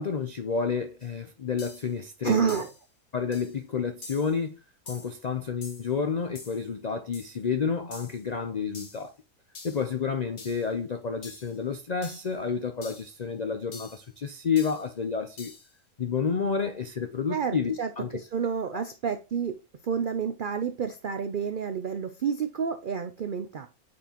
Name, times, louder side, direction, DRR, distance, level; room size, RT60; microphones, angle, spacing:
voice 1, 0.0-2.6 3.1-4.6 4.9-9.1 9.6-15.5 16.0-18.2 18.7-18.8, left 6 dB, 70° left, 0.4 m, -30 dB
sound 1, 1.0-1.1 1.6-1.9 2.5-2.8 3.3-3.6 4.0-4.4 4.9-5.2 5.6-5.9 6.4-6.7 7.1-7.4 7.9-8.2 8.7-9.1 9.6-9.9 10.4-10.7 11.2-11.6 12.0-12.4 12.8-13.2 13.7-14.1 14.6-14.9 15.4-15.7, left 3 dB, 40° left, 1.2 m, -46 dB
voice 2, 2.2-2.7 17.3-19.6 19.8-23.7, right 7 dB, 75° right, 0.4 m, -29 dB
8.5 x 4.4 x 2.9 m
omnidirectional pair, 1.6 m